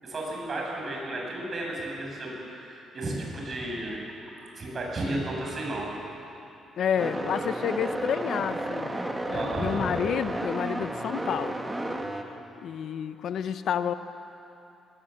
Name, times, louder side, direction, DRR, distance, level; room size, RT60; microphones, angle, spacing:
voice 1, 0.0-4.0 4.2-5.9 9.3-9.9, right 1 dB, 40° right, -1 dB, 6.5 m, -33 dB
voice 2, 6.8-9.0 9.3-11.6 12.6-13.9, left 8 dB, 70° left, 11 dB, 0.8 m, -29 dB
sound 1, 7.0-12.2, right 1 dB, 15° right, 1.7 m, -32 dB
20.0 x 17.0 x 7.7 m, 2.9 s
cardioid pair, 90°, 0 cm